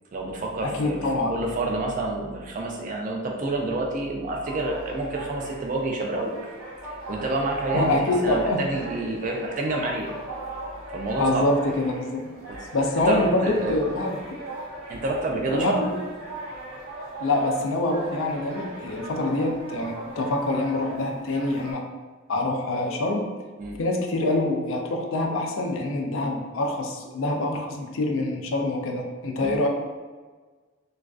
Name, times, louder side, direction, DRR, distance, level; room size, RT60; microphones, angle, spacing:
voice 1, 0.1-6.3 6.8-8.0 8.2-10.1 10.9-11.5 12.5-12.6 12.9-13.8 14.9-15.8 23.6-23.8 29.4-29.6, right 2 dB, 40° right, 0 dB, 0.3 m, -28 dB
voice 2, 0.6-1.3 7.7-8.6 11.2-12.3 12.7-14.2 15.5-16.0 17.2-21.8 22.3-23.3 23.8-29.7, left 2 dB, 70° left, 2 dB, 0.4 m, -25 dB
sound 1, 4.5-21.7, right 2 dB, 90° right, 0.7 m, -39 dB
2.3 x 2.3 x 2.3 m, 1.4 s
head